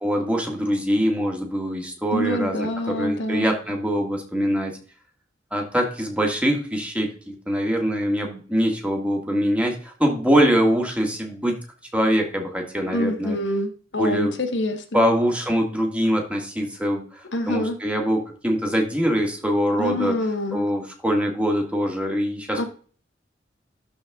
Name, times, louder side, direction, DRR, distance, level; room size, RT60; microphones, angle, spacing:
voice 1, 0.0-4.8 5.5-11.6 11.9-13.4 14.0-14.3 14.9-20.2 20.5-22.7, equal, 5° right, 1 dB, 1.7 m, -23 dB
voice 2, 2.1-3.5 12.9-15.0 17.3-17.8 19.8-20.7 22.5-22.7, left 1 dB, 85° left, 6 dB, 1.2 m, -26 dB
12.0 x 4.2 x 3.6 m, 0.41 s
head